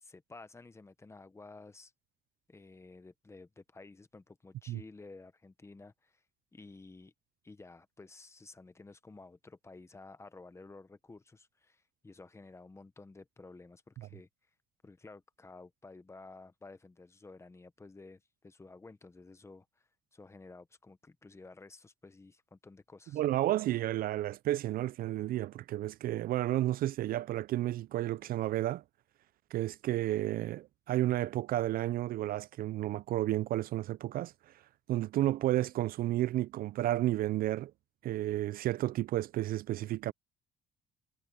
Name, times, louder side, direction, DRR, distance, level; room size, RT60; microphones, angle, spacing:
voice 1, 0.0-1.9 2.5-6.2 6.5-7.1 7.4-14.3 14.8-23.2, left 3 dB, 15° left, 1.1 m, -53 dB
voice 2, 23.1-28.8 29.5-34.5 34.9-37.7 38.0-40.1, right 14 dB, 60° right, 0.4 m, -32 dB
cardioid pair, 110°, 17 cm